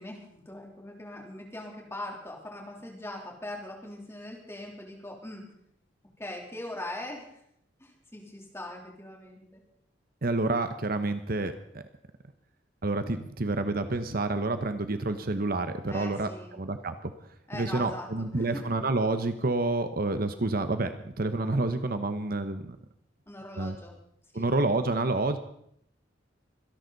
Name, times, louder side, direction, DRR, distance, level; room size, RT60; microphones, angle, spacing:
voice 1, 0.0-5.4 6.2-7.3 7.8-9.6 15.9-16.6 17.5-18.7 23.3-23.9 24.3-24.5, left 1 dB, 15° left, 0 dB, 3.4 m, -41 dB
voice 2, 10.2-11.8 12.8-17.1 17.5-22.8 23.6-23.8 24.3-25.4, right 2 dB, 50° right, 9 dB, 1.0 m, -29 dB
25.0 x 11.0 x 4.1 m, 0.72 s
head